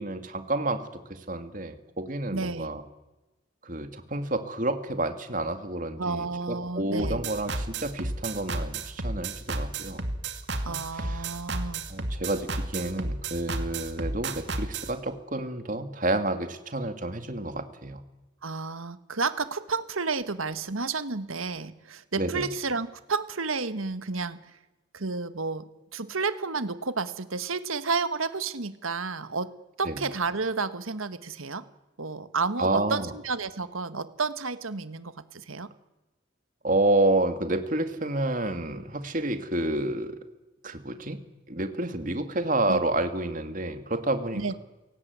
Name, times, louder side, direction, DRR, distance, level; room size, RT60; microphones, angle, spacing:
voice 1, 0.0-2.8 3.6-10.0 10.5-11.3 11.9-18.0 22.2-22.5 29.8-30.0 32.6-33.1 36.6-40.2 40.6-41.2 41.5-44.5, right 2 dB, 40° right, 8 dB, 2.1 m, -29 dB
voice 2, 2.3-2.7 6.0-7.2 10.6-11.9 18.4-24.5 24.9-29.5 29.8-31.7 32.0-35.7 42.7-42.8 44.3-44.5, right 4 dB, 85° right, 12 dB, 1.5 m, -31 dB
sound 1, 7.0-14.9, right 2 dB, 55° right, 2.4 m, -32 dB
29.5 x 17.5 x 9.6 m, 1.1 s
head